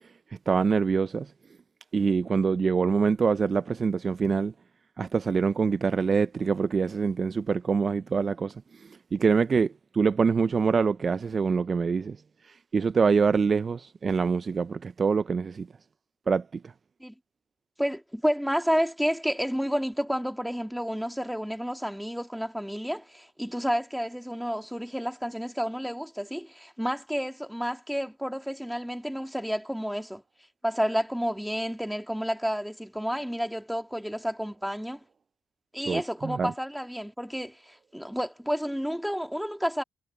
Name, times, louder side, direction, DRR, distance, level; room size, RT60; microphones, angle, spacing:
voice 1, 0.5-1.3 1.9-4.5 5.0-8.5 9.1-12.2 12.7-15.7 16.3-16.4 35.9-36.5, right 5 dB, 40° right, 0.4 m, -25 dB
voice 2, 17.8-30.2 30.6-35.0 35.7-39.8, equal, ahead, 2.7 m, -30 dB
cardioid pair, 90°, 0 cm